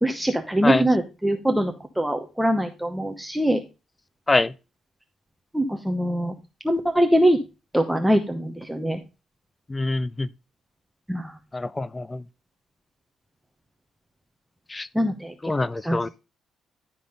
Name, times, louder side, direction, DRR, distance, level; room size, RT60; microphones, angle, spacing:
voice 1, 0.0-3.6 5.5-6.3 6.6-7.4 7.7-9.0 11.1-11.3 14.9-15.3 15.8-16.1, equal, 5° right, 0.9 m, -23 dB
voice 2, 9.7-10.3 11.5-12.2 14.7-14.9 15.4-16.1, left 2 dB, 20° left, 0.4 m, -24 dB
11.5 x 3.8 x 5.2 m
cardioid pair, 90°, 0 cm